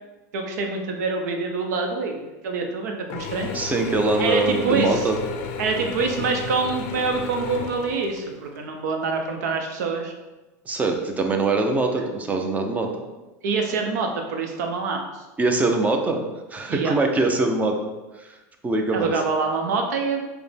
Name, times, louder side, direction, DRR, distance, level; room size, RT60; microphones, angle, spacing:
voice 1, 0.3-3.5 4.1-5.1 5.6-10.1 13.4-15.2 16.7-16.9 18.9-20.3, right 4 dB, 80° right, 3 dB, 0.7 m, -26 dB
Mechanisms / Drill, 3.1-8.6, left 5 dB, 60° left, 0.5 m, -33 dB
voice 2, 3.5-5.2 10.7-13.0 15.4-18.4 18.6-19.1, right 3 dB, 15° right, 3 dB, 0.5 m, -23 dB
4.9 x 2.1 x 3.3 m, 1.1 s
supercardioid pair, 125°, 9 cm